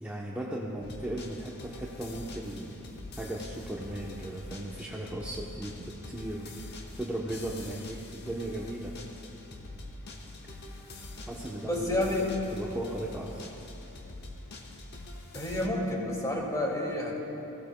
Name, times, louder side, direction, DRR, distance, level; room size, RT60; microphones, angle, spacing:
voice 1, 0.0-2.8 3.2-6.7 7.0-8.9 11.2-12.1 12.5-13.4, right 1 dB, 5° right, -5 dB, 0.8 m, -37 dB
sound 1, 0.8-15.7, left 1 dB, 50° left, 1.1 m, -44 dB
voice 2, 11.6-12.3 15.3-17.2, left 1 dB, 15° left, -2 dB, 2.2 m, -30 dB
20.0 x 16.0 x 2.2 m, 2.9 s
head